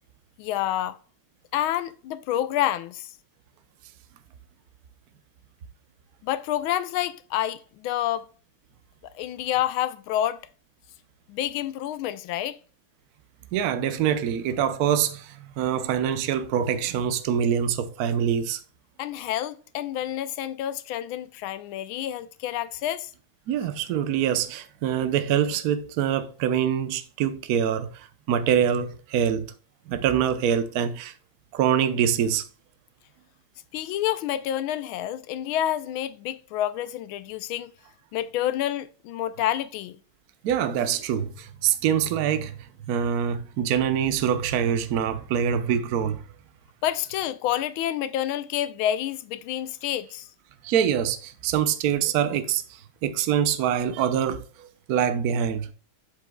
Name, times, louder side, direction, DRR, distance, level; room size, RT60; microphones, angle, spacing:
voice 1, 0.4-1.0 1.5-3.1 6.2-8.3 9.1-10.4 11.3-12.6 19.0-23.1 33.7-37.7 38.1-40.0 46.8-50.3, left 12 dB, 85° left, 1.4 m, -28 dB
voice 2, 13.5-18.6 23.5-29.5 29.9-31.1 31.5-32.4 40.4-42.5 42.9-46.2 50.6-55.7, right 8 dB, 60° right, 1.1 m, -25 dB
7.8 x 7.7 x 2.2 m
omnidirectional pair, 2.3 m